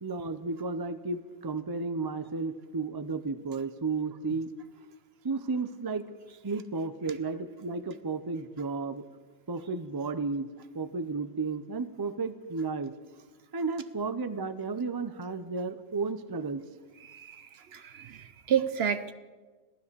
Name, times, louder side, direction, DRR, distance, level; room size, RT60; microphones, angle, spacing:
voice 1, 0.0-4.5 5.2-6.1 6.4-9.0 9.5-10.5 10.7-12.9 13.5-16.6, right 4 dB, 30° right, 12 dB, 0.4 m, -33 dB
voice 2, 17.0-17.5 17.7-19.1, right 8 dB, 60° right, 12 dB, 0.8 m, -30 dB
15.0 x 12.0 x 6.8 m, 1.3 s
omnidirectional pair, 1.4 m